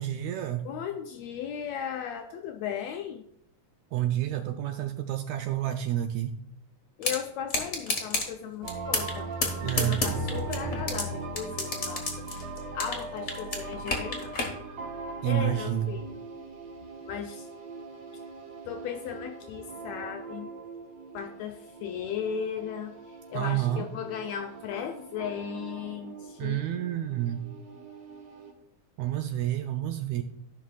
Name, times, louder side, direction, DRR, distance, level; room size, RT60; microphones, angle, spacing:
voice 1, 0.0-0.6 3.9-6.4 9.6-10.0 15.2-15.9 23.3-23.9 26.4-27.5 29.0-30.2, right 12 dB, 80° right, 7 dB, 1.6 m, -29 dB
voice 2, 0.6-3.2 7.0-9.3 9.6-12.5 12.7-14.3 15.2-16.1 17.0-17.5 18.7-20.5 21.1-22.9 23.3-26.6, left 8 dB, 85° left, 5 dB, 1.5 m, -36 dB
sound 1, 7.0-7.2 7.5-8.3 8.7-9.1 9.4-11.0 11.3-13.0 13.3-14.5, left 3 dB, 45° left, 0.9 m, -28 dB
sound 2, 8.6-28.5, right 3 dB, 60° right, 2.3 m, -40 dB
14.0 x 5.7 x 2.4 m, 0.73 s
omnidirectional pair, 3.6 m